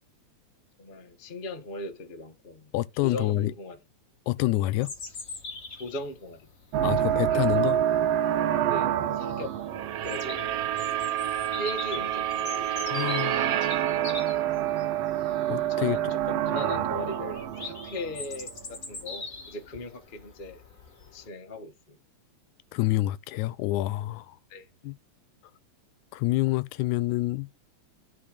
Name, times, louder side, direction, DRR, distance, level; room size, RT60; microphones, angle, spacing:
voice 1, 0.8-2.7 3.0-3.8 5.7-6.5 7.0-7.8 8.7-9.5 10.0-10.5 11.5-13.0 13.4-13.6 13.9-14.1 15.2-15.3 15.7-18.5 18.9-20.6 21.1-22.0 24.5-24.7, left 1 dB, 55° left, 0.5 m, -39 dB
voice 2, 2.7-3.5 4.3-4.9 6.8-7.8 12.9-13.5 15.5-16.1 22.7-24.4 24.8-24.9 26.1-27.5, left 17 dB, 90° left, 2.0 m, -27 dB
Bird vocalization bird call bird song, 4.8-21.3, left 3 dB, 35° left, 1.5 m, -43 dB
sound 1, 6.7-18.8, right 11 dB, 70° right, 1.7 m, -27 dB
11.5 x 4.4 x 5.0 m
omnidirectional pair, 3.4 m